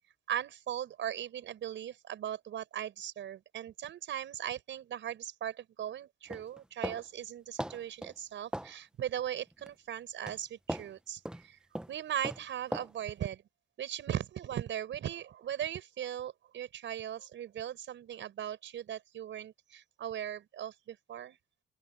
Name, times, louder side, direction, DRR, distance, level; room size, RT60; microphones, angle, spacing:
voice 1, 0.3-11.6 11.9-13.4 13.8-21.4, right 10 dB, 70° right, 6.6 m, -38 dB
sound 1, 6.3-7.0 7.6-8.1 8.5-8.7 9.5-9.7 10.3-10.4 10.7-10.9 11.3-11.4 11.8-11.9 12.2-12.4 12.7-12.9, right 1 dB, 5° right, 1.3 m, -38 dB
open air
cardioid pair, 90°, 20 cm